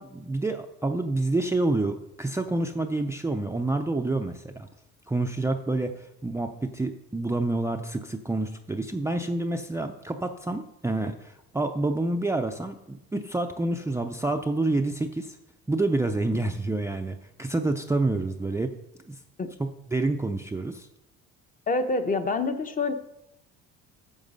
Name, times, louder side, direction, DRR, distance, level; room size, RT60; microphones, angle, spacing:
voice 1, 0.0-4.7 5.1-15.4 15.7-18.7 19.1-19.2 19.6-20.9, right 2 dB, 10° right, 6 dB, 0.5 m, -28 dB
voice 2, 21.7-22.9, left 3 dB, 25° left, 8 dB, 0.8 m, -26 dB
9.1 x 7.0 x 5.4 m, 0.85 s
cardioid pair, 115°, 32 cm